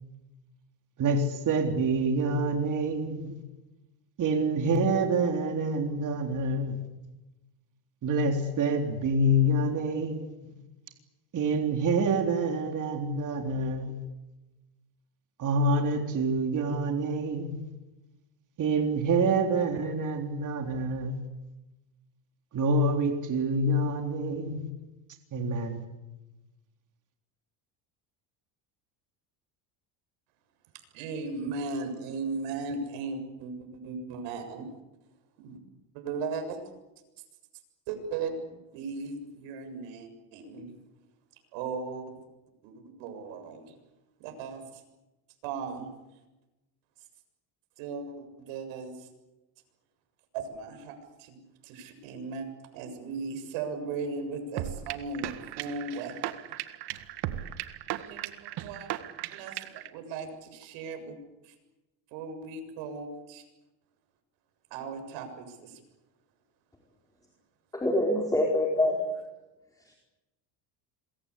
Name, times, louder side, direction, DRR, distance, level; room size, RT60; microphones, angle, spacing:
voice 1, 1.0-3.4 4.2-6.8 8.0-10.5 11.3-13.9 15.4-17.6 18.6-21.2 22.5-24.7 25.3-25.8, right 2 dB, 40° right, 3.7 m, -27 dB
voice 2, 30.9-34.7 35.4-35.6 35.9-36.6 37.9-40.7 41.5-42.2 42.6-43.7 44.2-44.8 45.4-45.9 47.8-49.1 50.3-52.5 52.7-56.3 58.1-58.9 59.3-61.2 61.4-61.5 62.1-63.4 64.7-65.8, right 4 dB, 75° right, 7.3 m, -37 dB
sound 1, 54.6-59.9, right 13 dB, 55° right, 1.9 m, -36 dB
voice 3, 67.7-69.0, left 1 dB, 5° left, 4.5 m, -25 dB
27.0 x 23.0 x 8.5 m
cardioid pair, 125°, 47 cm